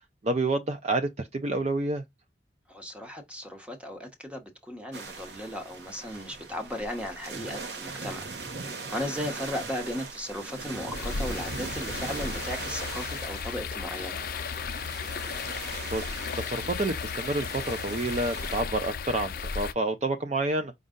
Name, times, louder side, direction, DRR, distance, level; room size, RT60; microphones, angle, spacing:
voice 1, 0.2-2.0 15.9-20.7, right 2 dB, 35° right, 0.5 m, -29 dB
voice 2, 2.7-8.3 8.7-14.2, equal, 5° right, 1.0 m, -36 dB
sound 1, 4.9-18.6, right 4 dB, 65° right, 1.0 m, -40 dB
sound 2, 10.9-19.7, left 6 dB, 50° left, 0.5 m, -35 dB
5.2 x 2.3 x 3.7 m
head